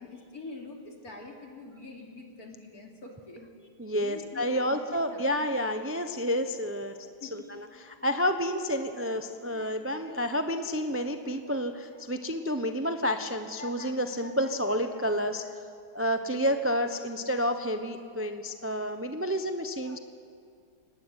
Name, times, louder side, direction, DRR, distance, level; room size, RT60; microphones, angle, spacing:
voice 1, 0.0-5.5 7.2-7.5, left 3 dB, 60° left, 1 dB, 3.5 m, -45 dB
voice 2, 3.8-7.0 7.3-15.6 15.9-20.0, equal, 10° right, 7 dB, 0.7 m, -30 dB
24.0 x 20.0 x 9.1 m, 2.3 s
omnidirectional pair, 1.8 m